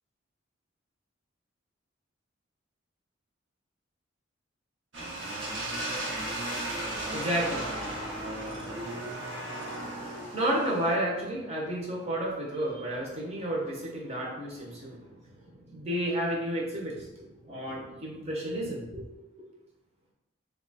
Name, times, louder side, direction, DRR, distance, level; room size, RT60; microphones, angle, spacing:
sound 1, 4.9-11.0, right 1 dB, 65° right, 0.9 m, -35 dB
voice 1, 6.0-19.1 19.4-19.5, right 1 dB, 30° right, -3 dB, 0.8 m, -33 dB
2.8 x 2.4 x 4.0 m, 1.0 s
head